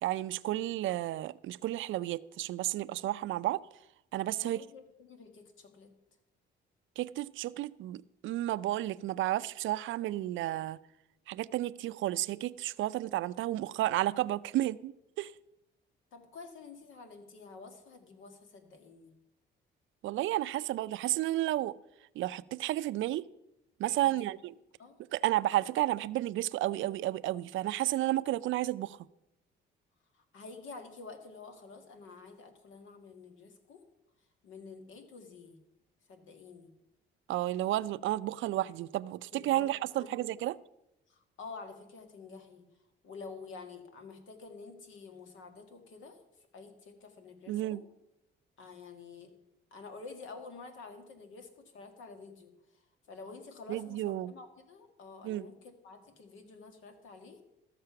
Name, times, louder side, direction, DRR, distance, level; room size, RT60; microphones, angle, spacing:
voice 1, 0.0-3.6 4.1-4.6 7.0-10.8 11.3-15.3 20.0-21.8 22.2-23.3 23.8-24.5 25.1-29.0 37.3-40.6 47.5-47.8 53.7-54.3 55.2-55.5, right 15 dB, 75° right, 17 dB, 0.4 m, -32 dB
voice 2, 4.4-5.9 16.1-19.1 23.9-24.3 24.8-25.0 30.2-33.8 34.4-35.6 36.1-36.7 39.3-39.7 39.9-40.4 41.1-42.7 43.0-46.2 46.5-47.9 48.6-49.4 49.7-52.5 53.1-57.4, left 4 dB, 80° left, 6 dB, 1.8 m, -49 dB
13.5 x 6.7 x 5.7 m, 0.88 s
cardioid pair, 90°, 20 cm